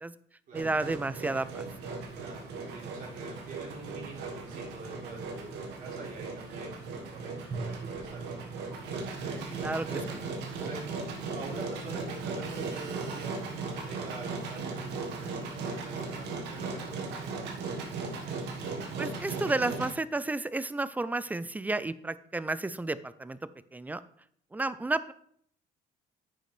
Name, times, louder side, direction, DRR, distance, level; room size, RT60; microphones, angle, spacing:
voice 1, 0.5-1.7 9.6-10.0 19.0-23.4 23.7-24.0 24.5-25.1, right 2 dB, 10° right, 15 dB, 0.3 m, -31 dB
Engine, 0.5-19.9, right 4 dB, 85° right, 1.4 m, -37 dB
voice 2, 2.2-6.8 7.1-8.8 9.2-10.8 11.2-17.9, right 2 dB, 55° right, -3 dB, 3.3 m, -45 dB
Drum, 7.5-9.9, right 4 dB, 25° right, 1.6 m, -43 dB
9.5 x 6.6 x 3.3 m, 0.65 s
cardioid pair, 110°, 17 cm